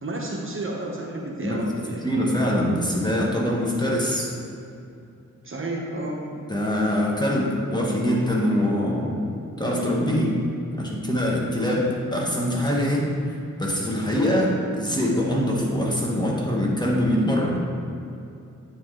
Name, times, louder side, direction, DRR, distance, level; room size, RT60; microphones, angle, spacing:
voice 1, 0.0-2.0 5.4-6.2, right 2 dB, 40° right, -2 dB, 1.0 m, -31 dB
voice 2, 2.0-4.3 6.5-9.2 9.6-10.4 10.7-17.8, equal, 15° left, -3 dB, 1.3 m, -23 dB
8.9 x 4.9 x 3.8 m, 2.6 s
cardioid pair, 70°, 31 cm